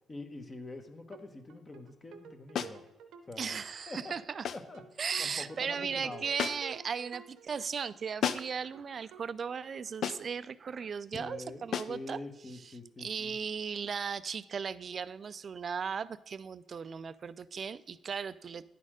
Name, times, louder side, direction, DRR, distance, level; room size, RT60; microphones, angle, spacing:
voice 1, 0.1-2.8 3.3-3.5 3.9-4.1 4.5-4.8 5.2-6.3 11.1-13.4, left 2 dB, 30° left, 7 dB, 1.0 m, -45 dB
sound 1, 1.1-1.2 1.5-4.0 4.3-4.4 4.7-8.3 8.7-8.8 9.1-9.2 9.5-10.2, right 7 dB, 80° right, 0.7 m, -52 dB
sound 2, 2.5-2.8 4.4-4.7 6.4-6.8 8.2-8.6 10.0-10.4 11.7-12.0, left 8 dB, 65° left, 0.4 m, -34 dB
voice 2, 3.4-4.5 5.0-12.2 12.5-12.7 13.0-18.6, right 6 dB, 45° right, 16 dB, 0.3 m, -37 dB
9.9 x 4.2 x 4.9 m, 0.95 s
cardioid pair, 90°, 0 cm